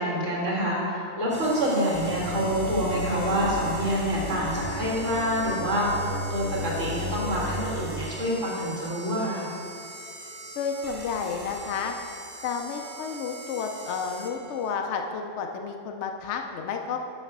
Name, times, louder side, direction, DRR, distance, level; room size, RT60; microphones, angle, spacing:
voice 1, 0.0-9.5, equal, 70° right, -5 dB, 2.2 m, -27 dB
sound 1, 1.3-14.7, right 1 dB, 30° right, 0.9 m, -41 dB
sound 2, 1.9-7.9, left 1 dB, 20° left, 0.9 m, -34 dB
voice 2, 10.6-11.9 12.4-17.0, left 6 dB, 70° left, 4 dB, 0.9 m, -31 dB
6.4 x 5.9 x 6.5 m, 2.5 s
omnidirectional pair, 1.3 m